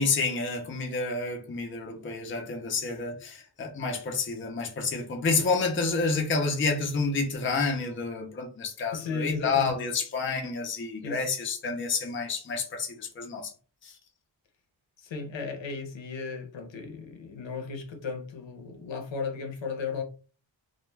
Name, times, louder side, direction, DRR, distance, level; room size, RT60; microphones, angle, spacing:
voice 1, 0.0-13.5 13.8-14.0, left 4 dB, 30° left, 0.5 m, -29 dB
voice 2, 8.9-9.8 11.0-11.2 15.0-20.0, left 4 dB, 75° left, 0.7 m, -35 dB
2.2 x 2.2 x 3.1 m
wide cardioid pair, 120°, 45 cm